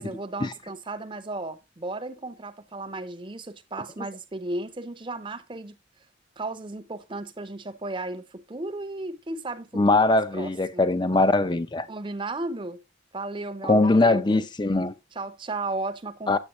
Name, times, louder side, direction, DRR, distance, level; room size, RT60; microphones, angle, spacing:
voice 1, 0.0-5.8 6.4-9.8 10.3-10.9 11.9-12.8 13.1-14.4 15.1-16.4, right 2 dB, 25° right, 0.7 m, -35 dB
voice 2, 9.7-11.9 13.6-14.9 16.3-16.4, left 2 dB, 20° left, 0.5 m, -21 dB
9.9 x 7.7 x 3.0 m
head